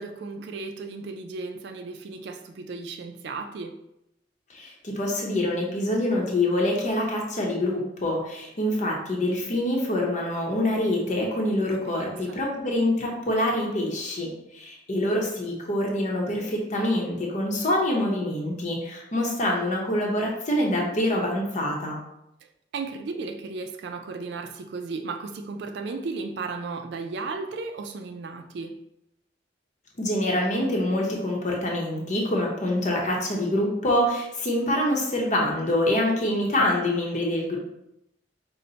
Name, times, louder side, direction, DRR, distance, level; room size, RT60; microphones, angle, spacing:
voice 1, 0.0-3.8 11.7-12.4 22.7-28.8, right 4 dB, 65° right, 0.4 m, -35 dB
voice 2, 4.5-22.0 30.0-37.6, left 1 dB, 40° left, 0.8 m, -25 dB
5.5 x 2.1 x 3.9 m
head